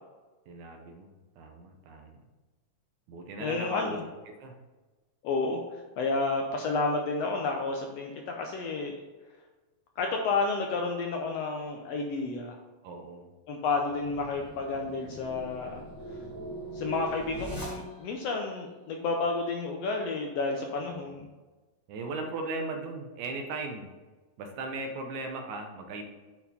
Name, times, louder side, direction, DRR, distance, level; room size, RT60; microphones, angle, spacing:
voice 1, 0.5-2.2 3.1-4.0 4.3-4.5 12.8-13.3 20.7-21.2 21.9-23.9 24.4-26.0, right 3 dB, 75° right, 3 dB, 2.3 m, -38 dB
voice 2, 3.4-4.0 5.2-5.6 6.0-9.0 10.0-12.6 13.5-15.8 16.7-21.3, left 3 dB, 75° left, 2 dB, 1.6 m, -31 dB
sound 1, 13.7-18.3, right 1 dB, 20° left, 0.5 m, -41 dB
9.0 x 4.3 x 4.3 m, 1.2 s
omnidirectional pair, 3.5 m